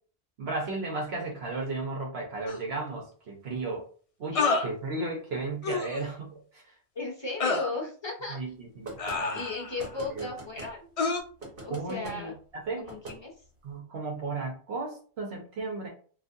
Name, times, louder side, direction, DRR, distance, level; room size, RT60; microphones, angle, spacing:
voice 1, 0.4-3.8 4.2-6.6 8.3-9.4 10.1-10.3 11.7-12.3 12.6-12.9 13.6-15.9, right 3 dB, 70° right, -1 dB, 1.1 m, -34 dB
sound 1, 2.5-2.6 4.3-4.7 5.6-6.0 7.4-7.7 9.0-9.8 11.0-11.2, left 4 dB, 50° left, 0.4 m, -28 dB
voice 2, 4.3-4.7 6.9-8.4 9.3-10.9 11.6-12.3 12.8-13.3, left 3 dB, 30° left, -1 dB, 0.8 m, -36 dB
sound 2, 8.8-9.2 9.8-10.7 11.4-12.2 12.9-13.2, right 2 dB, 55° right, 1.3 m, -42 dB
4.0 x 2.5 x 2.5 m, 0.42 s
omnidirectional pair, 1.1 m